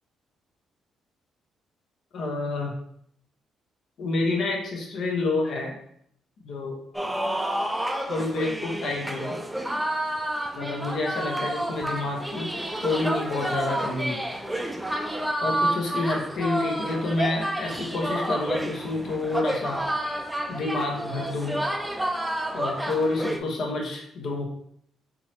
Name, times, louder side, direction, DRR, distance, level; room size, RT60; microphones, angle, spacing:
voice 1, 2.1-2.7 4.0-5.8 6.4-6.8 8.1-9.4 10.5-12.5 12.8-14.2 15.4-19.8 20.5-21.6 22.5-24.5, left 2 dB, 65° left, 0 dB, 0.9 m, -28 dB
sound 1, 6.9-23.4, right 1 dB, 5° right, 0.4 m, -30 dB
3.7 x 3.0 x 3.0 m, 0.70 s
cardioid pair, 90°, 0 cm